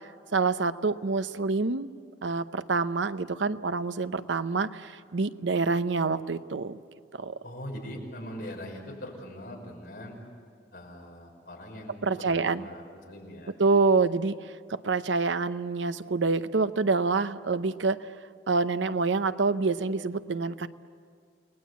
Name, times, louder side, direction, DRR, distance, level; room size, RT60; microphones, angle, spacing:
voice 1, 0.3-1.9 2.2-6.8 7.2-7.3 12.0-12.7 13.6-18.1 18.5-20.7, right 4 dB, 90° right, 12 dB, 0.8 m, -27 dB
voice 2, 7.4-10.2 10.7-13.6, equal, 60° left, 0 dB, 6.0 m, -41 dB
29.5 x 19.5 x 8.3 m, 2.2 s
head